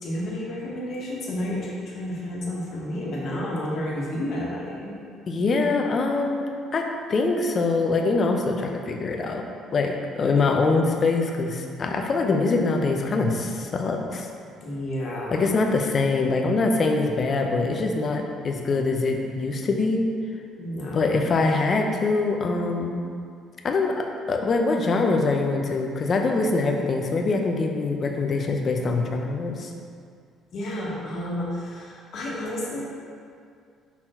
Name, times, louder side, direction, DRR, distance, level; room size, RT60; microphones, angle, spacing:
voice 1, 0.0-4.9 14.6-15.5 20.6-21.0 30.5-32.8, left 1 dB, 50° left, -5 dB, 1.4 m, -31 dB
voice 2, 5.3-9.4 9.7-14.3 15.3-20.0 20.9-23.0 23.6-29.7, left 3 dB, 30° left, 2 dB, 0.6 m, -24 dB
5.7 x 4.4 x 4.4 m, 2.3 s
cardioid pair, 160°, 0 cm